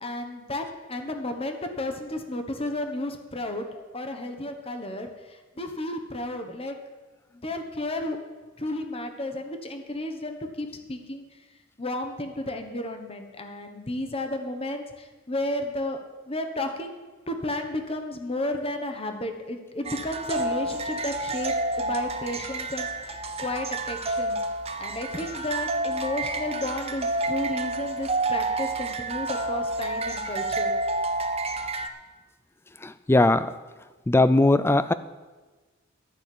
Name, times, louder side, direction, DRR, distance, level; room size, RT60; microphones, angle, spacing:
voice 1, 0.0-6.8 7.4-8.2 8.6-11.2 11.8-16.0 16.3-22.9 23.4-24.4 24.8-30.7, left 1 dB, 30° left, 5 dB, 1.2 m, -32 dB
sound 1, 19.8-31.9, right 2 dB, 30° right, 0.8 m, -29 dB
voice 2, 32.8-33.5 34.1-34.9, left 2 dB, 10° left, 13 dB, 0.4 m, -19 dB
12.0 x 6.5 x 8.7 m, 1.3 s
head